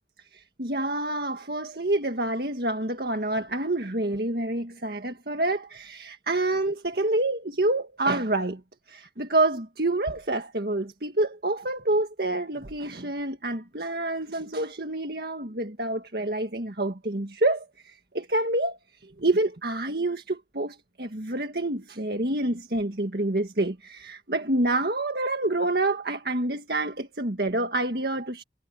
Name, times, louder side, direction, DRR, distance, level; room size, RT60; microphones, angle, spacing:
voice 1, 0.3-8.6 8.9-28.4, right 2 dB, 60° right, 1.9 m, -27 dB
head